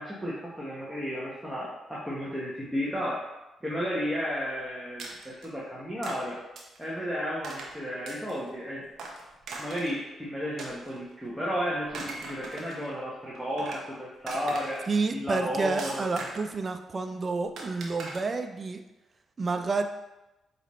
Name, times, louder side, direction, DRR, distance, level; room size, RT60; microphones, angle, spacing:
voice 1, 0.0-3.2 3.6-6.4 6.8-8.8 9.6-14.8 15.1-16.0, equal, 10° right, -7 dB, 1.1 m, -33 dB
sound 1, 5.0-5.5 6.0-6.2 6.5-6.8 7.4-7.7 8.1-8.5 9.0-10.0 10.6-11.3 11.8-12.9 13.3-13.9 14.3-15.0 15.8-16.6 17.6-18.2, right 3 dB, 65° right, 0.8 m, -40 dB
voice 2, 14.9-18.8 19.4-19.8, right 3 dB, 40° right, 6 dB, 0.4 m, -29 dB
5.0 x 2.7 x 3.1 m, 1.0 s
supercardioid pair, 50°, 0 cm